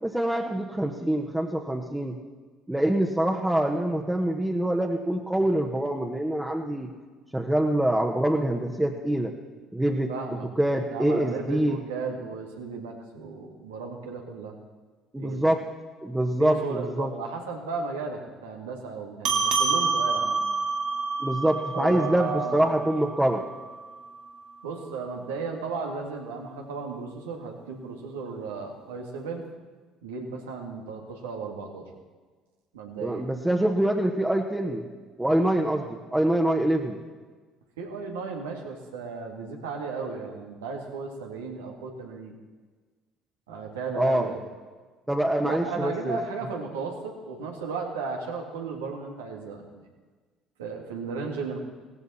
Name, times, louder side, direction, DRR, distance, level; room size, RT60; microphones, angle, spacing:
voice 1, 0.0-2.2 2.7-6.9 7.3-9.3 9.7-11.8 15.1-15.6 16.0-17.1 21.2-23.4 33.0-34.9 35.2-37.0 43.9-44.3 45.1-46.2, right 1 dB, 10° right, 0 dB, 1.3 m, -25 dB
voice 2, 10.1-10.5 10.9-14.5 15.2-15.4 16.4-20.4 21.7-22.8 24.6-29.5 30.0-31.8 32.7-33.2 37.8-42.3 43.5-44.4 45.4-49.9 50.6-51.6, right 4 dB, 90° right, 1 dB, 2.0 m, -35 dB
sound 1, 19.2-24.0, right 4 dB, 60° right, 1.5 m, -28 dB
16.5 x 15.5 x 4.3 m, 1.4 s
hypercardioid pair, 65°, 0 cm